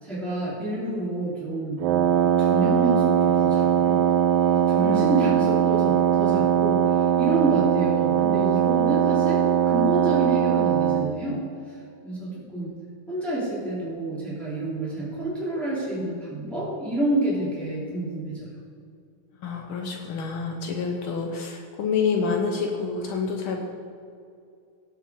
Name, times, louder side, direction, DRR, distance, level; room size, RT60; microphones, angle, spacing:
voice 1, 0.0-1.8 2.2-4.1 4.5-11.4 12.0-12.7 13.1-18.5, right 2 dB, ahead, -8 dB, 3.3 m, -28 dB
Wind instrument woodwind instrument, 1.8-11.1, right 9 dB, 80° right, 1.3 m, -21 dB
voice 2, 4.8-5.1 19.4-23.6, left 5 dB, 75° left, 2 dB, 1.8 m, -28 dB
18.5 x 6.2 x 4.7 m, 2.3 s
omnidirectional pair, 2.3 m